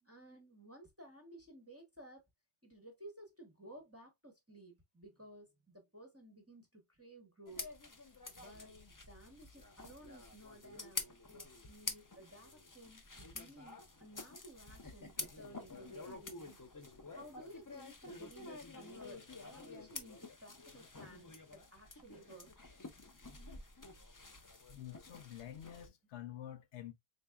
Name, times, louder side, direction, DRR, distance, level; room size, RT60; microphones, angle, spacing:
voice 1, 0.0-2.2 2.6-7.7 8.4-8.8 9.1-16.6 17.1-22.5, right 1 dB, 15° right, 0.8 m, -56 dB
sound 1, 7.5-25.9, left 3 dB, 30° left, 0.3 m, -49 dB
voice 2, 24.7-26.9, left 11 dB, 80° left, 0.9 m, -48 dB
3.9 x 3.3 x 2.2 m
omnidirectional pair, 1.2 m